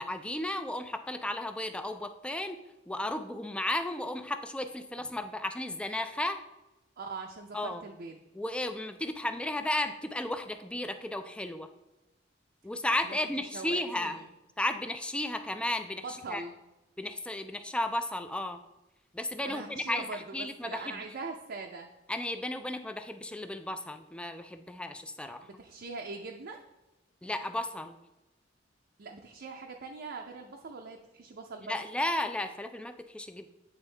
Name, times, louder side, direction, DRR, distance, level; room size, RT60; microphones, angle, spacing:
voice 1, 0.0-2.6 2.9-6.4 7.5-7.8 8.3-11.7 12.6-14.2 14.6-16.4 17.0-18.6 19.1-21.0 22.1-25.5 27.2-28.0 31.7-33.5, left 1 dB, 5° left, 8 dB, 0.3 m, -34 dB
voice 2, 7.0-8.2 13.0-13.2 13.5-14.3 16.0-16.5 19.5-21.9 25.4-26.6 29.0-31.7, right 3 dB, 55° right, 1 dB, 0.5 m, -42 dB
8.9 x 3.6 x 3.3 m, 0.98 s
head